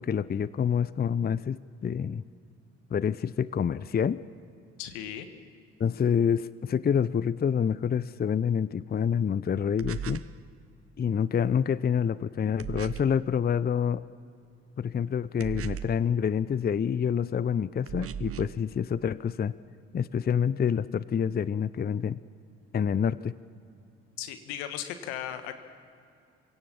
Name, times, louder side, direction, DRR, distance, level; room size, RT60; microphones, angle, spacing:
voice 1, 0.0-2.2 2.9-4.2 5.8-10.2 11.0-14.0 14.8-19.5 19.9-22.2 22.7-23.3, left 7 dB, 30° left, 18 dB, 0.6 m, -27 dB
voice 2, 4.8-5.3 24.2-25.6, left 10 dB, 80° left, 9 dB, 1.4 m, -36 dB
sound 1, 9.8-10.4 12.6-13.2 15.4-16.1 17.9-18.6, right 9 dB, 40° right, 0.8 m, -37 dB
26.5 x 17.0 x 7.3 m, 2.5 s
hypercardioid pair, 50°, 34 cm